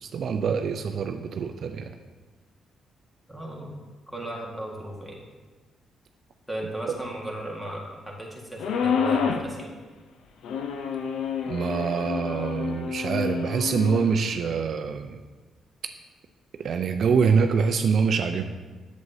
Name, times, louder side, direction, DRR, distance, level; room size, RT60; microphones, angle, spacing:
voice 1, 0.0-1.9 11.5-15.2 16.6-18.4, right 6 dB, 60° right, 6 dB, 0.4 m, -25 dB
voice 2, 3.3-3.8 4.1-5.2 6.5-9.7, right 1 dB, ahead, -2 dB, 1.6 m, -36 dB
sound 1, 8.6-9.5 10.4-14.1, left 6 dB, 80° left, 0.5 m, -28 dB
7.9 x 7.3 x 2.7 m, 1.3 s
cardioid pair, 100°, 0 cm